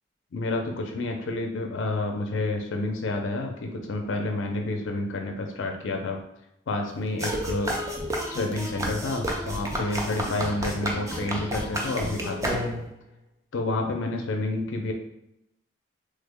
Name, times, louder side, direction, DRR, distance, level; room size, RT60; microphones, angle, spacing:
voice 1, 0.3-6.2 6.7-7.8 8.3-12.8 13.5-14.9, left 2 dB, 65° left, 3 dB, 0.4 m, -29 dB
sound 1, 7.2-13.0, equal, 15° right, 0.3 m, -31 dB
3.3 x 2.1 x 3.5 m, 0.82 s
head